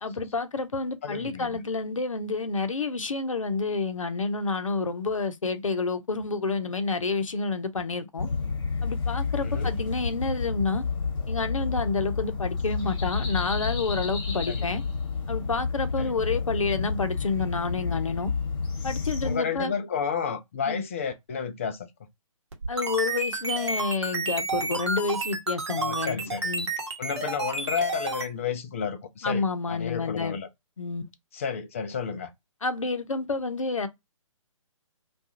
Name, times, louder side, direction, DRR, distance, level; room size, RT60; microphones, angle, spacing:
voice 1, 0.0-8.3 8.8-10.8 11.3-14.8 15.3-18.3 18.8-19.7 20.7-20.8 22.7-26.7 29.2-30.4 30.8-31.0 32.6-33.9, left 4 dB, 70° left, 0.6 m, -29 dB
voice 2, 1.0-1.6 9.4-9.7 14.5-14.6 16.0-16.1 19.2-21.9 25.8-26.5 27.0-30.5 31.3-32.3, left 6 dB, 25° left, 0.3 m, -31 dB
sound 1, 8.2-19.4, left 5 dB, 40° left, 1.1 m, -30 dB
sound 2, 22.5-28.3, right 3 dB, 55° right, 0.9 m, -30 dB
2.4 x 2.3 x 2.7 m
figure-of-eight pair, 135°, 17 cm